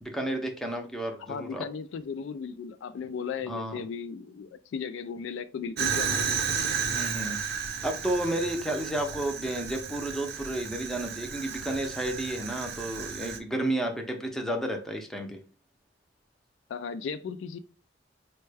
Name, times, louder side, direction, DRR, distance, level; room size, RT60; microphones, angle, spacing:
voice 1, 0.0-1.6 3.5-3.8 6.9-7.4 7.8-15.4, right 1 dB, ahead, 0.5 m, -32 dB
voice 2, 1.3-6.4 16.7-17.6, left 6 dB, 75° left, 0.3 m, -36 dB
Fire, 5.8-13.4, right 6 dB, 60° right, 0.5 m, -33 dB
4.3 x 2.2 x 3.2 m
head